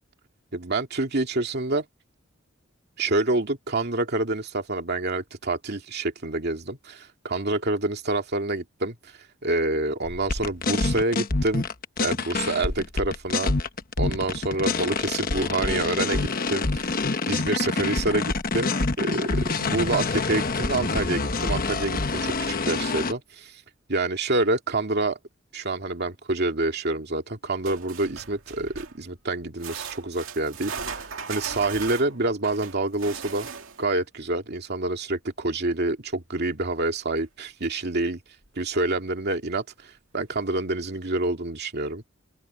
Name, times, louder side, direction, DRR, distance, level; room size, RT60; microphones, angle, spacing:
voice 1, 0.5-1.8 3.0-9.0 9.4-11.7 12.0-13.5 14.0-16.9 17.3-23.5 23.9-25.2 25.5-33.5 33.8-38.2 38.6-42.0, right 2 dB, 55° right, 2.3 m, -27 dB
sound 1, 10.0-23.1, left 3 dB, 45° left, 1.1 m, -26 dB
sound 2, 27.6-29.0 29.6-33.9 37.2-37.3 37.6-37.7 38.4-38.5, right 6 dB, 75° right, 2.4 m, -37 dB
open air
head